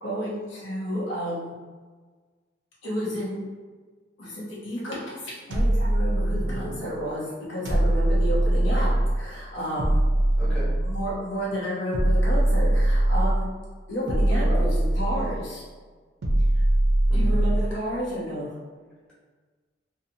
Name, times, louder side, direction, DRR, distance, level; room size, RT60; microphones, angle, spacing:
voice 1, 0.0-1.5 2.8-3.4 4.2-10.0 10.8-13.5 13.9-15.6 16.6-16.7 17.1-18.5, equal, 85° left, -6 dB, 0.9 m, -31 dB
sound 1, 5.5-6.8 7.7-9.3 9.8-11.2 11.9-13.5 14.1-15.5 16.2-17.8, right 1 dB, 65° right, 0.4 m, -22 dB
voice 2, 6.4-6.7 10.4-10.7 14.3-14.6 17.1-17.4, equal, 5° left, -12 dB, 1.0 m, -35 dB
2.6 x 2.3 x 2.7 m, 1.5 s
head